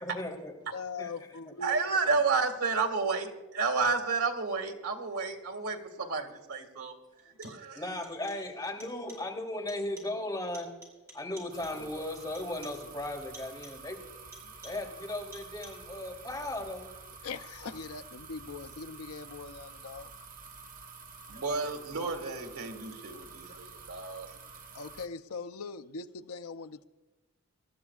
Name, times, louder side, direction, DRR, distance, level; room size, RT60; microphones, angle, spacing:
voice 1, 0.0-0.5 1.0-1.1 7.7-10.7 11.1-14.0 14.6-16.9, left 1 dB, 20° left, 3.0 m, -36 dB
voice 2, 0.7-1.9 14.4-14.5 17.2-20.1 24.7-26.8, left 4 dB, 85° left, 0.6 m, -41 dB
voice 3, 1.6-6.9 7.4-7.8 21.3-24.4, right 4 dB, 90° right, 2.0 m, -31 dB
sound 1, 6.1-6.2 7.2-7.8 8.0-8.5 8.8-9.4 9.7-10.3 10.5-11.9 12.3-12.9 13.3-13.9 14.3-15.0 15.3-15.9, right 2 dB, 10° right, 4.9 m, -53 dB
sound 2, 11.5-25.1, right 4 dB, 40° right, 0.9 m, -49 dB
26.5 x 13.5 x 2.4 m
head